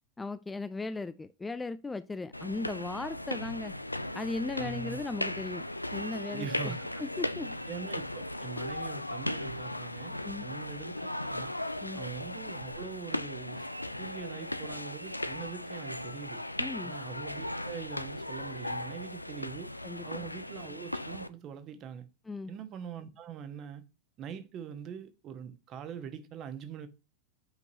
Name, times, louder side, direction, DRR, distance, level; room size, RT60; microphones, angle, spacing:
voice 1, 0.2-3.7 4.1-5.6 5.9-7.5 10.2-10.5 11.8-12.0 16.6-16.9 19.8-20.3 22.3-22.5, left 3 dB, 10° left, 0.4 m, -37 dB
sound 1, 2.3-21.3, left 1 dB, 85° left, 0.4 m, -37 dB
voice 2, 4.6-5.0 6.3-7.0 7.7-11.5 11.9-13.7 14.0-16.4 16.8-19.8 20.0-22.1 22.5-23.8 24.2-26.9, right 8 dB, 35° right, 1.1 m, -43 dB
8.1 x 5.3 x 2.7 m
figure-of-eight pair, 90°, 0 cm